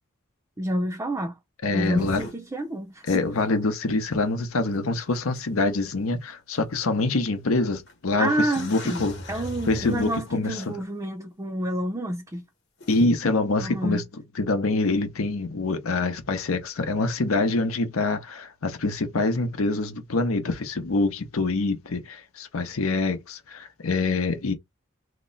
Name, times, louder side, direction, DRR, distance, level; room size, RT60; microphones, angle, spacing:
voice 1, 0.6-1.4 1.7-3.3 8.2-9.0 9.3-12.4 13.6-14.0, right 1 dB, 15° right, 0.5 m, -29 dB
voice 2, 1.6-2.2 3.1-9.2 9.7-10.7 12.9-14.0 14.4-24.5, left 3 dB, 80° left, 0.8 m, -25 dB
sound 1, 1.9-2.3 3.1-3.4 4.7-4.8 5.4-5.5 6.5-6.6 7.9-8.0 8.3-10.7 12.8-13.0, left 1 dB, 55° left, 1.1 m, -38 dB
2.9 x 2.1 x 3.9 m
head